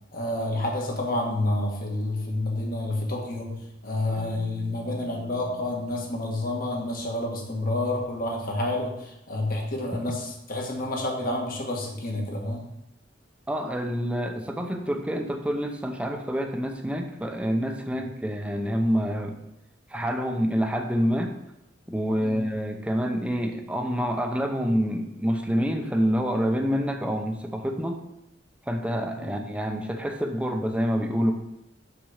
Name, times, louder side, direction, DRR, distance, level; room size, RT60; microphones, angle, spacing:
voice 1, 0.1-3.6 3.8-12.6 17.9-18.1 22.2-22.4, left 1 dB, 50° left, 0 dB, 1.7 m, -29 dB
Keyboard (musical), 4.1-7.4, left 8 dB, 40° right, 1.2 m, -48 dB
voice 2, 13.5-19.4 19.9-21.3 21.9-28.0 28.7-31.3, equal, 5° right, 3 dB, 0.7 m, -27 dB
6.1 x 6.0 x 5.0 m, 0.86 s
head